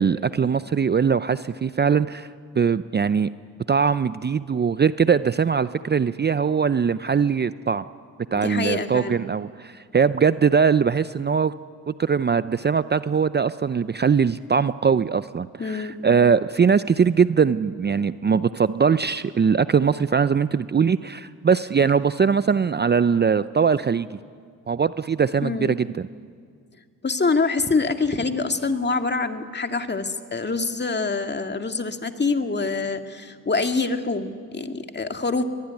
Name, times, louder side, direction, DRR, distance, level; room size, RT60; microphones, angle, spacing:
voice 1, 0.0-2.3 2.6-3.3 3.7-7.8 8.3-11.5 11.9-24.2 24.7-25.9, right 6 dB, 30° right, 14 dB, 0.6 m, -21 dB
voice 2, 8.3-9.2 15.6-16.0 25.4-25.8 27.0-35.4, left 4 dB, 30° left, 6 dB, 2.0 m, -25 dB
22.5 x 22.5 x 9.8 m, 2.1 s
cardioid pair, 70°, 37 cm